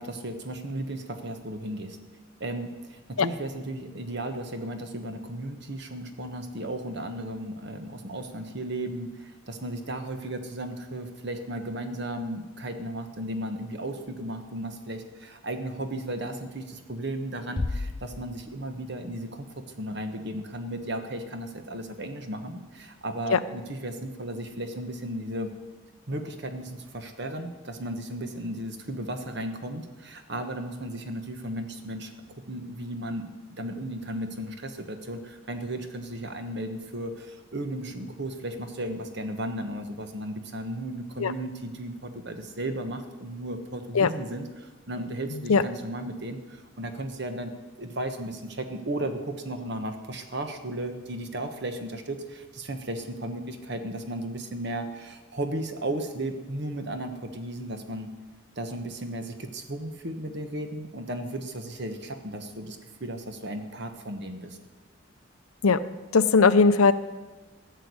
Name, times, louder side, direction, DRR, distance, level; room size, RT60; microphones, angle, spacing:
voice 1, 0.0-2.0 2.4-25.5 26.1-58.1 58.5-64.6, right 1 dB, 55° right, 7 dB, 1.3 m, -35 dB
Bass drum, 17.6-19.0, left 2 dB, 25° left, 0.3 m, -33 dB
voice 2, 66.1-66.9, left 4 dB, 90° left, 13 dB, 0.6 m, -18 dB
14.0 x 6.6 x 9.6 m, 1.2 s
head